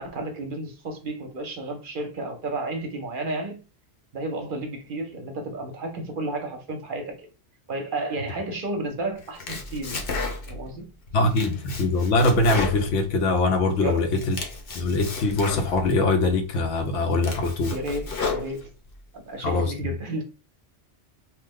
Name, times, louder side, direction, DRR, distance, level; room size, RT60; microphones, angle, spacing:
voice 1, 0.0-3.6 4.1-7.3 7.7-10.0 10.5-10.9 13.8-14.1 17.7-18.7 19.1-20.2, right 2 dB, 55° right, 0.7 m, -32 dB
Domestic sounds home sounds, 9.2-10.7 11.1-13.6 14.0-16.0 16.5-16.6 17.0-18.9, left 4 dB, 55° left, 0.8 m, -33 dB
voice 2, 11.1-14.4 14.7-17.8 19.4-19.9, left 2 dB, 85° left, 1.0 m, -23 dB
2.9 x 2.1 x 3.5 m
omnidirectional pair, 1.2 m